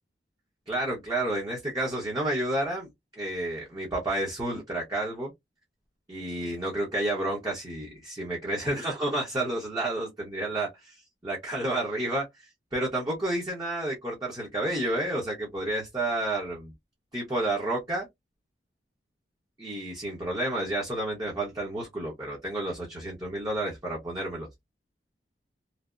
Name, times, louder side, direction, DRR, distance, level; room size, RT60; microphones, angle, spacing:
voice 1, 0.7-2.9 3.2-5.3 6.1-11.0 11.2-16.7 17.1-18.1 19.6-24.5, right 1 dB, 20° right, 0.9 m, -30 dB
3.3 x 2.0 x 2.4 m
head